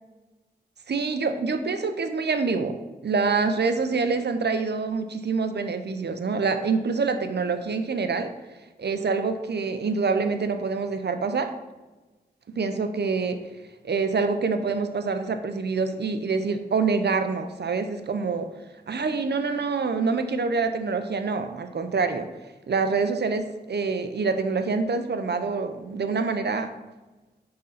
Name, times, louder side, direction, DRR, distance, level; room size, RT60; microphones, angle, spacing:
voice 1, 0.9-2.8 3.0-8.3 8.8-11.5 12.6-13.4 13.8-18.5 18.9-22.3 22.7-26.7, right 4 dB, 75° right, 8 dB, 0.7 m, -26 dB
9.7 x 3.8 x 5.6 m, 1.2 s
wide cardioid pair, 80°, 17 cm